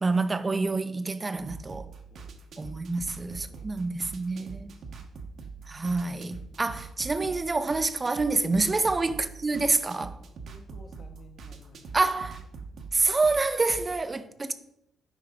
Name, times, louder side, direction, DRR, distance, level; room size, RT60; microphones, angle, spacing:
voice 1, 0.0-1.9 2.6-4.7 5.7-10.2 11.9-12.4 12.9-14.5, right 3 dB, 25° right, 0.4 m, -27 dB
sound 1, 1.4-13.9, right 4 dB, 65° right, 0.8 m, -44 dB
voice 2, 10.5-11.8 14.1-14.3, left 2 dB, 45° left, 1.2 m, -53 dB
6.4 x 4.8 x 3.7 m
cardioid pair, 90°, 0 cm